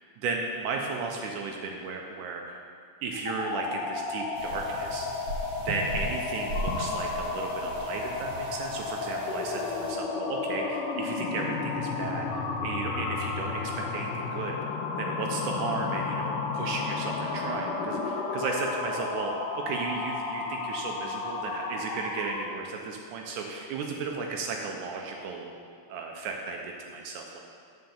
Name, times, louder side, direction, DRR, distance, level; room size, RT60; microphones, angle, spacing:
voice 1, 0.0-2.6 3.0-5.1 5.6-25.5 25.9-27.4, right 4 dB, 80° right, 1 dB, 2.2 m, -35 dB
sound 1, 3.1-22.6, left 4 dB, 85° left, 1.2 m, -32 dB
sound 2, 4.3-9.9, right 1 dB, 60° right, 1.9 m, -38 dB
7.7 x 5.8 x 7.1 m, 2.3 s
omnidirectional pair, 3.6 m